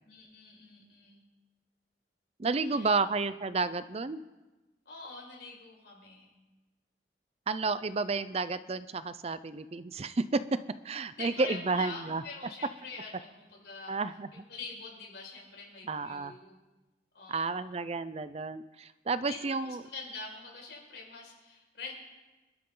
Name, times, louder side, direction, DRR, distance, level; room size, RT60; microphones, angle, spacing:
voice 1, 0.0-1.3 2.6-3.1 4.9-6.3 11.1-14.0 14.3-16.6 17.1-17.8 19.2-21.9, left 4 dB, 70° left, -2 dB, 5.4 m, -45 dB
voice 2, 2.4-4.2 7.5-10.6 10.8-12.2 13.9-14.3 15.9-16.3 17.3-19.8, right 4 dB, 35° right, 14 dB, 0.5 m, -31 dB
25.5 x 12.5 x 3.8 m, 1.1 s
head